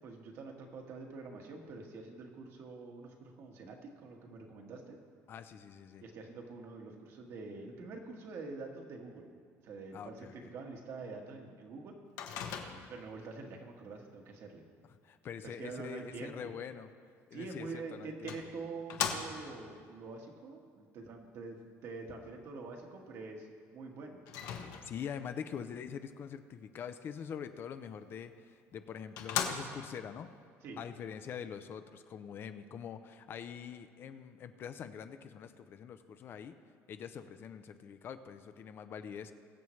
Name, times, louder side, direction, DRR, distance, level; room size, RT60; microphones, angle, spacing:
voice 1, 0.0-5.0 6.0-9.3 9.6-11.9 12.9-14.6 15.4-16.5 17.3-23.5 23.7-24.2 30.6-30.8, right 3 dB, 55° right, 2 dB, 1.6 m, -46 dB
voice 2, 5.3-6.0 9.9-10.5 12.6-12.9 15.0-16.9 17.3-18.4 24.8-30.3 30.8-36.6 36.9-39.3, left 7 dB, 40° left, 10 dB, 0.5 m, -44 dB
Microwave oven, 12.2-13.1 17.4-17.5 18.3-19.6 24.3-25.2 28.3-28.4 28.8-28.9 29.2-30.0, left 7 dB, 75° left, 1.2 m, -38 dB
21.5 x 7.3 x 3.2 m, 2.1 s
cardioid pair, 145°, 6 cm